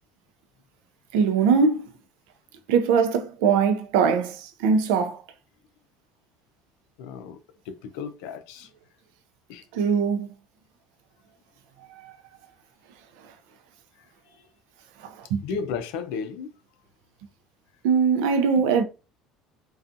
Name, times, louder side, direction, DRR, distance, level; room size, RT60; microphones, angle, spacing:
voice 1, 1.1-1.8 2.7-5.2 9.7-10.3 12.0-12.1 15.2-15.4 17.8-18.8, right 6 dB, 85° right, 0.4 m, -21 dB
voice 2, 7.0-7.4 7.7-8.7 9.5-9.6 15.4-16.5, left 6 dB, 75° left, 0.4 m, -34 dB
2.4 x 2.3 x 2.6 m
cardioid pair, 165°, 0 cm